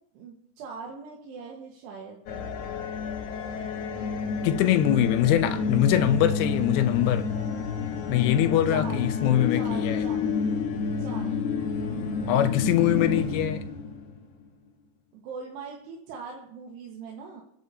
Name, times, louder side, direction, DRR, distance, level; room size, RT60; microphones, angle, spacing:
voice 1, 0.1-2.2 8.7-9.1 9.5-10.2 11.0-11.4 15.1-17.4, right 5 dB, 85° right, -1 dB, 3.5 m, -41 dB
sound 1, 2.3-14.3, left 5 dB, 65° left, 2.2 m, -29 dB
voice 2, 4.4-7.2 8.1-10.1 12.3-13.6, left 11 dB, 80° left, 9 dB, 2.4 m, -23 dB
27.5 x 9.5 x 2.7 m, 0.73 s
omnidirectional pair, 4.7 m